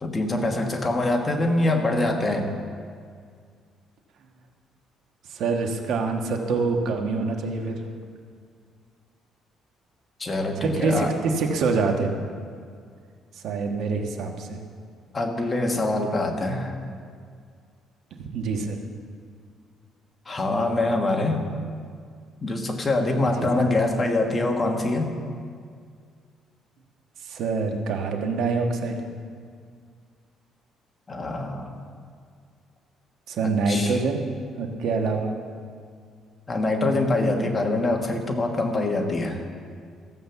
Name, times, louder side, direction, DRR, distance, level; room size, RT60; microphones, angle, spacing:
voice 1, 0.0-2.5 10.2-11.2 15.1-16.7 20.2-21.5 22.4-25.1 31.1-31.7 33.7-34.0 36.5-39.4, left 2 dB, 20° left, 2 dB, 1.4 m, -24 dB
voice 2, 5.3-7.9 10.6-12.2 13.4-14.6 18.2-18.8 23.4-23.7 27.2-29.0 33.3-34.3 34.6-35.4, right 4 dB, 70° right, 3 dB, 1.4 m, -25 dB
14.5 x 7.6 x 7.0 m, 2.1 s
cardioid pair, 135°, 0 cm